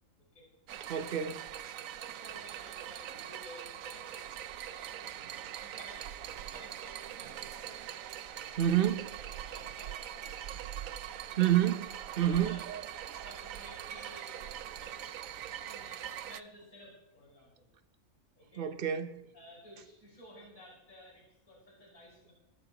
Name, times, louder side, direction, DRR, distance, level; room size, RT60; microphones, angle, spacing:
sound 1, 0.7-16.4, right 10 dB, 85° right, 1.1 m, -42 dB
voice 1, 0.9-1.5 5.4-5.5 8.6-9.2 11.4-12.6 13.1-13.2 18.6-19.2, right 11 dB, 45° right, 1.0 m, -29 dB
voice 2, 1.9-4.2 4.6-5.0 5.6-7.8 8.3-8.6 9.3-10.4 10.9-11.2 12.1-12.6 13.0-17.7 18.4-18.6 19.3-22.3, left 1 dB, 90° left, 6.0 m, -55 dB
22.5 x 13.0 x 3.0 m
omnidirectional pair, 1.4 m